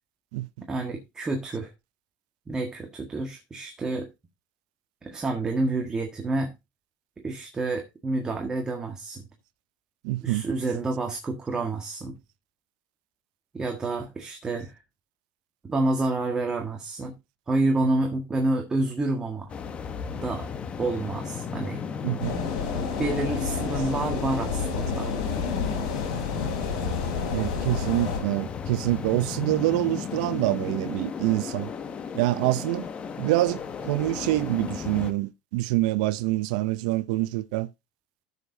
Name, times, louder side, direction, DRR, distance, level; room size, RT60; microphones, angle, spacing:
voice 1, 0.7-1.7 2.5-4.1 5.0-6.5 7.2-9.3 10.2-12.2 13.5-14.8 15.6-17.1 17.5-19.5 20.1-20.5 20.8-21.8 23.0-25.1, right 2 dB, 20° right, 1.7 m, -28 dB
voice 2, 10.0-10.4 22.0-22.3 27.3-31.7 32.1-32.9 33.2-37.7, right 17 dB, 75° right, 0.6 m, -26 dB
sound 1, 19.5-35.1, left 6 dB, 30° left, 1.1 m, -35 dB
sound 2, 22.2-28.2, left 5 dB, 85° left, 4.1 m, -30 dB
14.0 x 6.7 x 2.7 m
supercardioid pair, 130°, 4 cm